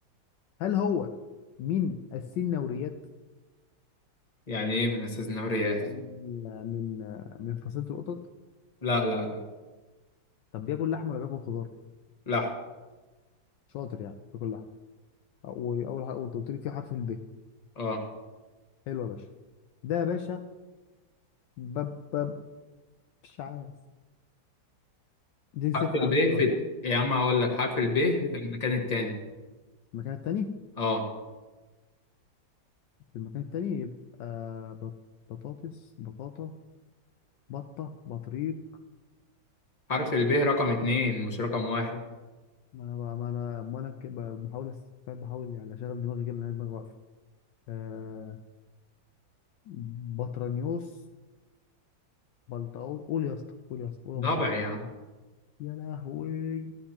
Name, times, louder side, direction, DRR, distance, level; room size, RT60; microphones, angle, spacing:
voice 1, 0.6-1.1 1.6-2.9 5.8-8.2 10.5-11.7 13.7-14.6 15.4-17.2 18.9-19.2 19.8-20.4 21.6-22.3 23.2-23.7 25.5-26.4 28.3-28.4 29.9-30.5 33.1-33.9 34.2-34.9 35.3-36.5 37.5-38.6 42.7-44.8 45.1-46.9 47.7-48.4 49.7-50.9 52.5-53.4 53.7-54.6 55.6-56.7, left 8 dB, 75° left, 6 dB, 1.2 m, -34 dB
voice 2, 4.5-5.8 8.8-9.4 12.3-12.5 17.8-18.0 25.7-26.6 26.8-28.2 28.5-29.2 30.8-31.1 39.9-42.0 54.1-54.9, left 2 dB, 20° left, 1 dB, 1.4 m, -27 dB
15.0 x 12.0 x 2.9 m, 1.2 s
omnidirectional pair, 2.1 m